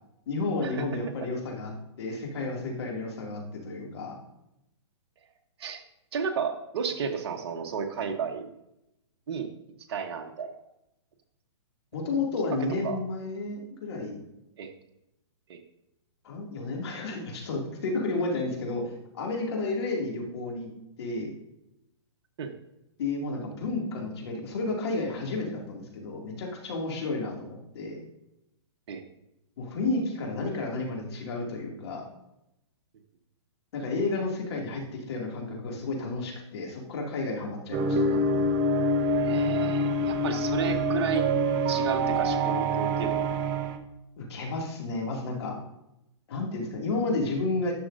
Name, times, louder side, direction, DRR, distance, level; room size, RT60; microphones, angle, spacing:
voice 1, 0.3-1.7 2.0-4.2 11.9-14.2 16.2-20.7 21.0-21.3 23.0-28.0 29.6-32.1 33.7-38.2 44.2-45.5 46.3-47.7, left 3 dB, 60° left, 0 dB, 2.3 m, -31 dB
voice 2, 6.1-8.5 9.3-9.5 9.9-10.5 12.8-12.9 14.6-14.7 15.5-15.6 22.4-22.5 28.9-29.0 39.2-41.2 41.7-43.2, right 6 dB, 55° right, 4 dB, 1.0 m, -32 dB
sound 1, 37.7-43.8, right 1 dB, 25° right, 0.7 m, -26 dB
10.5 x 6.3 x 2.6 m, 0.86 s
hypercardioid pair, 140°, 15 cm